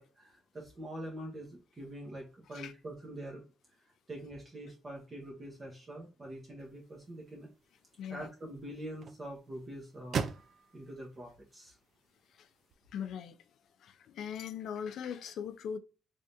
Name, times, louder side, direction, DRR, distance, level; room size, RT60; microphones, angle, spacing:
voice 1, 0.0-3.4 4.1-7.5 8.1-10.2 10.7-11.8, right 1 dB, 35° right, 1.1 m, -45 dB
car hood close, 6.6-12.7, right 6 dB, 60° right, 0.4 m, -43 dB
voice 2, 8.0-8.3 12.3-12.5 12.9-13.4 13.8-15.8, left 8 dB, 70° left, 0.5 m, -40 dB
3.6 x 3.4 x 2.7 m
cardioid pair, 90°, 0 cm